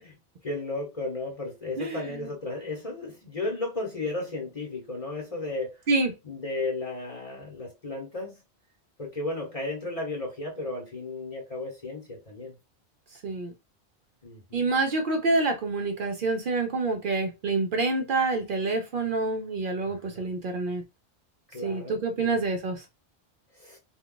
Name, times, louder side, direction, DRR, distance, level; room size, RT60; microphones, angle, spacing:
voice 1, 0.4-5.8 6.2-8.4 9.0-12.5 14.2-14.7 19.9-20.3 21.5-22.4 23.5-23.8, left 2 dB, 35° left, 0.9 m, -34 dB
voice 2, 1.8-2.3 5.9-6.1 13.2-13.5 14.5-20.8 21.6-22.8, right 3 dB, 60° right, 0.6 m, -27 dB
2.3 x 2.3 x 3.7 m
omnidirectional pair, 1.2 m